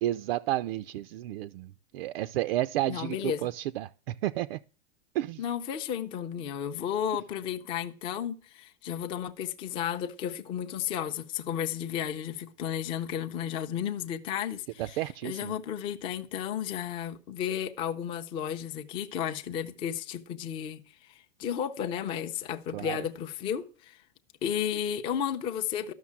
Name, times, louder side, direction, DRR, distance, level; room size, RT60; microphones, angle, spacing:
voice 1, 0.0-4.6 5.1-5.4 15.0-15.5 22.7-23.0, right 14 dB, 65° right, 0.5 m, -31 dB
voice 2, 2.9-3.5 5.4-24.0 24.4-25.9, left 9 dB, 15° left, 0.5 m, -33 dB
13.0 x 6.4 x 7.3 m
supercardioid pair, 170°, 32 cm